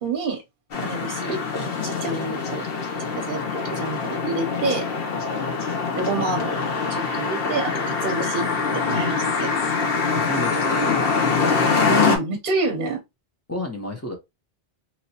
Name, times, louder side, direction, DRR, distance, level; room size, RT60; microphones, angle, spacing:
voice 1, 0.0-0.4 0.8-2.7 3.2-4.9 5.9-8.5 8.7-9.5 11.9-13.0, right 2 dB, 55° right, 0.8 m, -28 dB
sound 1, 0.7-12.2, left 4 dB, 65° left, 1.0 m, -24 dB
voice 2, 10.1-11.1 13.5-14.2, equal, 20° left, 0.5 m, -31 dB
3.1 x 2.7 x 2.7 m
omnidirectional pair, 1.1 m